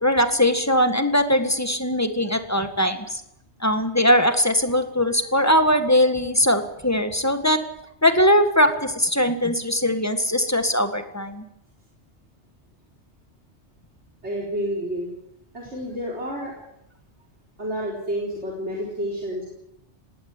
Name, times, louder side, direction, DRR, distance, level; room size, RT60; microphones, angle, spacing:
voice 1, 0.0-3.1 3.6-7.6 8.0-11.4, left 1 dB, 15° left, 8 dB, 1.7 m, -20 dB
voice 2, 14.2-15.1 15.5-16.5 17.6-19.5, equal, 80° right, -2 dB, 4.5 m, -29 dB
19.5 x 17.5 x 9.7 m, 0.83 s
omnidirectional pair, 1.1 m